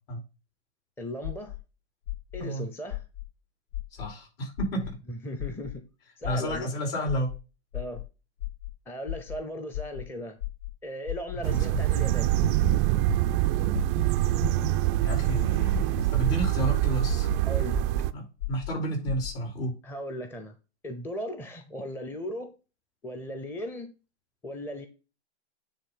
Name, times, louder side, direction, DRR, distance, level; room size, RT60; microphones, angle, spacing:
voice 1, 1.0-1.5 2.3-3.0 5.1-5.8 6.2-6.7 7.7-8.0 8.9-10.4 10.8-12.3 17.4-17.8 19.8-20.6 20.8-22.5 23.0-23.9 24.4-24.9, equal, 5° left, 7 dB, 0.7 m, -37 dB
sound 1, 1.2-1.6 2.1-2.4 2.9-3.2 3.7-4.1 4.6-4.9 5.4-5.7 6.2-6.6 7.1-7.4 7.7-8.0 8.4-8.7 9.1-9.4 9.7-10.0 10.4-10.7 11.1-11.4 11.7-12.0 12.4-12.7 13.1-13.4 13.7-14.0 14.4-14.7 15.1-15.4 15.7-16.0 16.4-16.7 17.1-17.4 17.7-18.0 18.4-18.7 19.1-19.3, left 17 dB, 80° left, 3.5 m, -34 dB
voice 2, 3.9-4.8 6.2-7.3 11.4-11.6 15.0-17.3 18.1-19.7, right 1 dB, 60° left, 0 dB, 4.8 m, -31 dB
sound 2, 11.4-18.1, right 16 dB, 30° right, 0.4 m, -25 dB
9.6 x 3.3 x 5.8 m, 0.31 s
hypercardioid pair, 125°, 33 cm